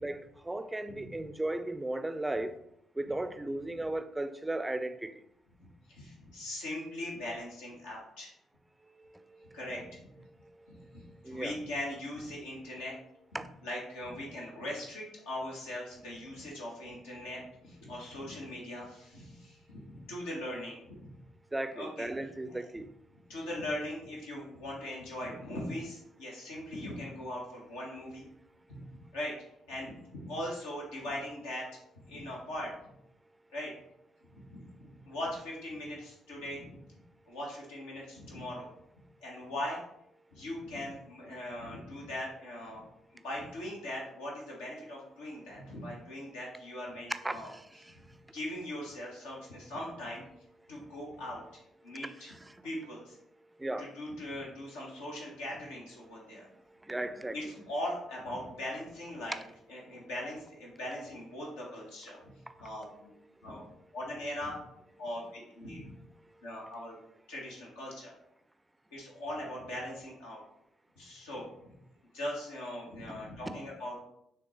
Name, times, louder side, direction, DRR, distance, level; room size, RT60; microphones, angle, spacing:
voice 1, 0.5-2.5 3.0-5.1 11.2-11.5 13.3-13.4 21.5-22.9 47.2-47.4 53.6-53.9 56.9-57.4, right 2 dB, 15° right, 0.5 m, -35 dB
voice 2, 5.6-8.3 9.5-10.1 10.7-13.0 13.6-21.1 21.7-22.6 23.3-28.3 28.7-28.9 29.1-29.3 29.7-31.7 32.1-32.7 33.5-33.7 34.5-36.8 37.3-38.7 39.2-39.8 40.3-42.9 43.2-47.5 47.8-48.0 48.3-50.2 50.7-51.4 51.8-52.4 52.6-53.2 53.8-56.5 57.3-62.3 62.6-63.1 63.4-63.6 63.9-64.6 65.0-65.9 66.4-67.0 67.3-68.1 68.9-70.4 71.0-71.7 72.1-74.0, left 1 dB, 70° left, 1.6 m, -40 dB
6.2 x 3.8 x 4.3 m
figure-of-eight pair, 45°, 0 cm